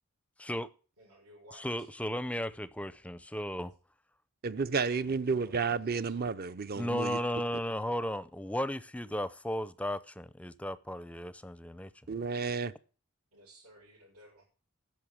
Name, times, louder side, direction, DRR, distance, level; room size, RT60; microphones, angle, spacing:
voice 1, 1.0-1.9 4.8-5.6 6.0-6.2 7.2-7.5 13.3-14.4, right 2 dB, 90° right, 6.7 m, -56 dB
voice 2, 1.6-3.7 6.8-11.9, equal, 5° left, 0.5 m, -35 dB
voice 3, 4.4-7.2 12.1-12.7, right 5 dB, 45° right, 0.6 m, -31 dB
11.0 x 6.3 x 8.6 m
head